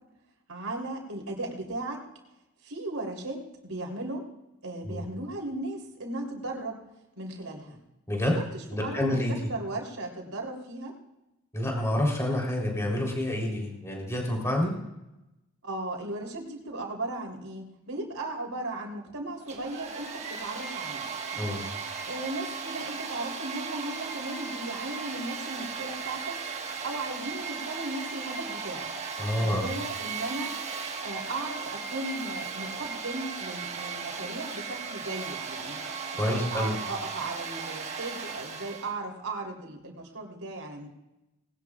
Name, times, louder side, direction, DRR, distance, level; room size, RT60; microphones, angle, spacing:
voice 1, 0.5-2.0 2.6-4.2 4.6-6.8 7.2-7.8 8.3-8.4 8.7-9.2 9.4-10.9 15.6-21.1 21.3-21.7 22.1-26.4 26.8-28.9 29.4-30.5 31.0-35.8 36.1-40.9, right 2 dB, 75° right, 1 dB, 3.6 m, -36 dB
voice 2, 8.7-9.4 11.5-14.7 21.4-21.6 29.2-29.7 36.2-36.7, left 1 dB, 15° left, 0 dB, 3.7 m, -28 dB
Domestic sounds home sounds, 19.4-38.9, right 5 dB, 30° right, 1.5 m, -36 dB
20.0 x 18.5 x 2.5 m, 0.94 s
head